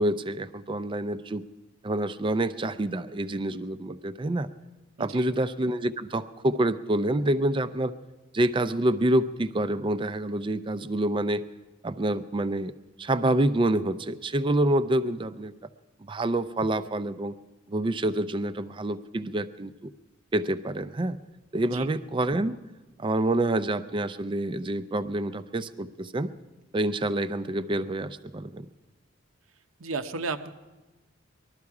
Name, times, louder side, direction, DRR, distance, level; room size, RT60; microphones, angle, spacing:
voice 1, 0.0-1.4 1.8-4.5 5.0-7.9 8.3-11.4 11.8-12.7 13.0-15.5 16.0-17.3 17.7-19.9 20.3-21.2 21.5-22.6 23.0-26.3 26.7-28.7, right 1 dB, 25° right, 13 dB, 0.4 m, -27 dB
voice 2, 5.0-5.3 21.7-21.9 29.8-30.5, right 4 dB, 85° right, 9 dB, 0.7 m, -33 dB
20.0 x 12.5 x 4.8 m, 1.2 s
head